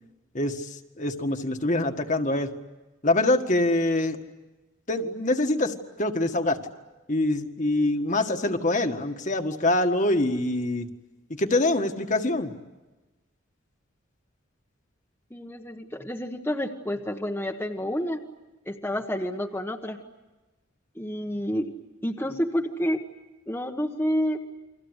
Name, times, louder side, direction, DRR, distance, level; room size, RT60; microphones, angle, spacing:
voice 1, 0.3-2.5 3.0-4.2 4.9-6.6 7.1-10.9 11.3-12.5, left 2 dB, 35° left, 5 dB, 1.8 m, -25 dB
voice 2, 15.3-18.2 18.7-20.0 20.9-21.7 22.0-23.1 23.5-24.4, equal, 10° left, 1 dB, 1.3 m, -29 dB
30.0 x 24.5 x 8.2 m, 1.1 s
head